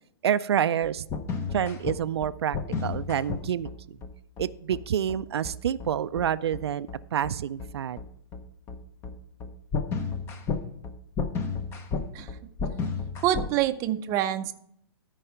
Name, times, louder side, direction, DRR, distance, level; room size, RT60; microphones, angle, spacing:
voice 1, 0.2-1.1 1.5-4.0 4.4-8.0, right 9 dB, 80° right, 13 dB, 0.4 m, -28 dB
sound 1, 0.8-13.5, left 5 dB, 20° left, 0.7 m, -32 dB
voice 2, 13.2-14.5, right 12 dB, 25° right, 8 dB, 0.6 m, -26 dB
13.5 x 4.7 x 5.7 m, 0.71 s
hypercardioid pair, 145°, 13 cm